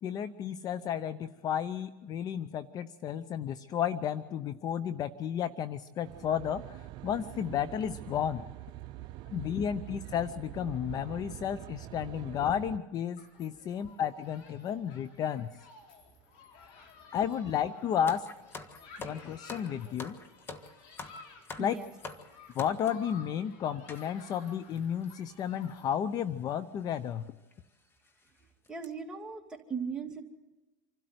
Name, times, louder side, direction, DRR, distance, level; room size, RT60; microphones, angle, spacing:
voice 1, 0.0-8.4 9.3-15.5 16.6-16.8 17.1-18.3 19.0-20.2 21.6-21.8 22.5-27.3, left 9 dB, 40° left, 14 dB, 0.7 m, -33 dB
Aircraft, 6.0-12.8, right 15 dB, 50° right, 0.6 m, -45 dB
Human group actions, 13.2-25.9, left 4 dB, 60° left, 4.1 m, -55 dB
sound 1, 18.1-23.1 23.9-24.1 24.8-24.9 25.0-25.2 26.2-26.4 26.9-27.0 27.5-27.6 28.0-28.3 28.6-28.9, left 3 dB, 25° left, 1.6 m, -45 dB
voice 2, 21.6-21.9 28.7-30.2, right 5 dB, 5° right, 0 dB, 2.6 m, -38 dB
26.0 x 12.5 x 8.0 m, 1.1 s
supercardioid pair, 105°, 10 cm